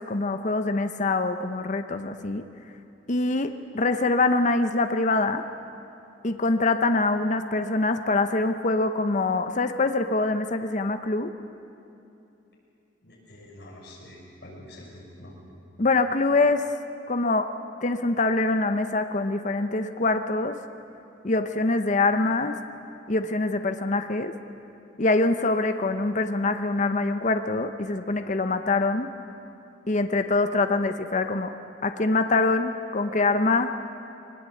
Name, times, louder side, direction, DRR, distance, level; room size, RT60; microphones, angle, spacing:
voice 1, 0.0-2.5 3.1-5.4 6.2-11.3 15.8-16.6 17.1-17.5 17.8-20.6 21.2-22.6 23.1-24.3 25.0-29.1 29.9-31.5 31.8-33.7, left 3 dB, 40° left, 8 dB, 0.8 m, -24 dB
voice 2, 13.0-15.3, left 1 dB, 60° left, -3 dB, 6.6 m, -46 dB
22.0 x 20.0 x 8.4 m, 2.8 s
head